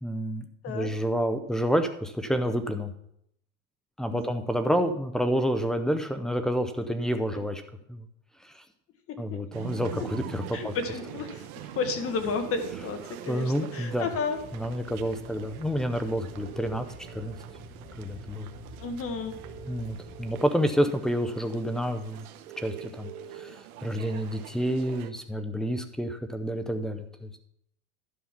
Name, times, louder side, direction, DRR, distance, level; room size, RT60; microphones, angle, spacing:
voice 1, 0.0-2.9 4.0-7.6 7.9-8.1 8.4-8.6 9.2-10.7 13.3-14.1 14.5-16.9 17.1-17.4 18.0-18.5 19.7-22.3 22.6-23.5 23.8-27.3, equal, ahead, 9 dB, 0.5 m, -29 dB
voice 2, 9.1-9.4 10.5-11.5 11.7-14.4 18.8-19.3, left 5 dB, 30° left, 7 dB, 1.5 m, -32 dB
sound 1, 9.5-25.1, right 10 dB, 85° right, 1.0 m, -44 dB
sound 2, 14.3-20.4, equal, 70° left, 3.0 m, -47 dB
11.5 x 5.3 x 5.8 m, 0.74 s
supercardioid pair, 135°, 42 cm